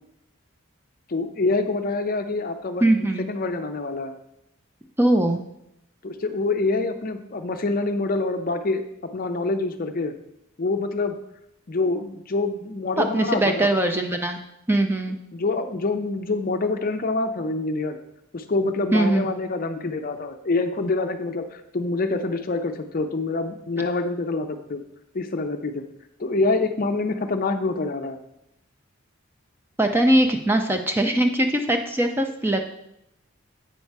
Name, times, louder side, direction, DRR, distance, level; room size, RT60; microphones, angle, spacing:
voice 1, 1.1-2.9 3.3-4.1 6.0-8.8 9.1-10.1 10.6-11.1 11.7-13.7 15.3-18.0 18.3-24.8 25.1-25.8 26.2-28.2, left 3 dB, 40° left, 7 dB, 0.5 m, -26 dB
voice 2, 2.8-3.3 5.0-5.4 13.0-14.4 14.7-15.2 18.9-19.3 29.8-32.7, right 1 dB, 10° right, 5 dB, 0.5 m, -21 dB
8.2 x 5.4 x 4.6 m, 0.82 s
head